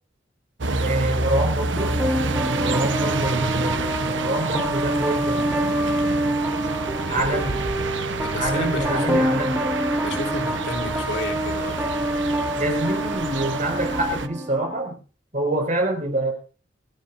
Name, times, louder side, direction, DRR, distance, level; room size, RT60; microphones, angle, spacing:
sound 1, 0.6-14.3, right 3 dB, 85° right, 1.1 m, -28 dB
voice 1, 0.8-1.9 2.6-5.6 7.1-7.6 8.3-9.5 12.6-15.0 15.3-16.3, right 1 dB, 45° right, 4 dB, 5.7 m, -26 dB
sound 2, 1.8-14.8, right 1 dB, 10° right, 1.3 m, -26 dB
voice 2, 7.0-7.6 8.2-9.3 10.0-11.9, left 2 dB, 90° left, 3 dB, 4.0 m, -32 dB
28.5 x 13.5 x 2.7 m, 0.36 s
head